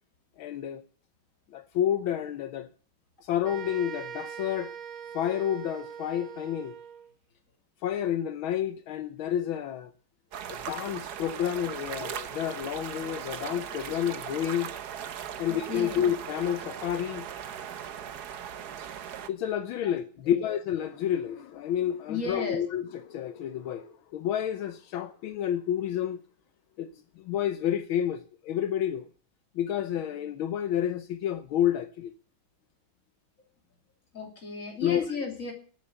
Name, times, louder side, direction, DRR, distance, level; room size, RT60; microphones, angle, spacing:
voice 1, 0.4-0.8 1.5-2.7 3.2-4.7 5.1-6.7 7.8-9.9 10.5-14.7 15.4-17.3 19.3-26.2 26.8-26.9 27.2-29.0 29.5-32.1 34.8-35.0, left 10 dB, 80° left, 1.6 m, -30 dB
sound 1, 3.4-7.1, right 8 dB, 85° right, 2.0 m, -41 dB
sound 2, 10.3-19.3, right 9 dB, 60° right, 1.3 m, -38 dB
voice 2, 15.4-16.1 18.6-18.9 19.8-19.9 20.2-20.5 22.1-22.7 34.1-35.5, left 4 dB, 40° left, 3.4 m, -35 dB
13.0 x 8.5 x 8.1 m
omnidirectional pair, 2.2 m